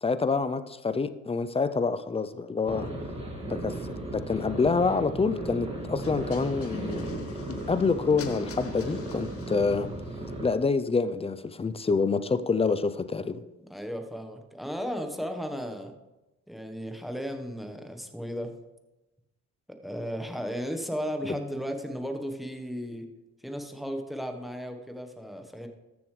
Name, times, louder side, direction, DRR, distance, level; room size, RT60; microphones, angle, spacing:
voice 1, 0.0-2.9 3.5-3.7 4.1-7.1 7.7-9.9 10.4-13.4, left 4 dB, 20° left, 12 dB, 0.5 m, -27 dB
sound 1, 2.7-10.5, right 1 dB, 20° right, 2.1 m, -36 dB
sound 2, 6.0-9.9, left 6 dB, 50° left, 0.9 m, -45 dB
voice 2, 13.7-15.9 16.5-18.5 19.7-23.1 23.4-25.7, equal, ahead, 5 dB, 1.2 m, -35 dB
13.5 x 7.0 x 3.3 m, 1.0 s
cardioid pair, 90°, 30 cm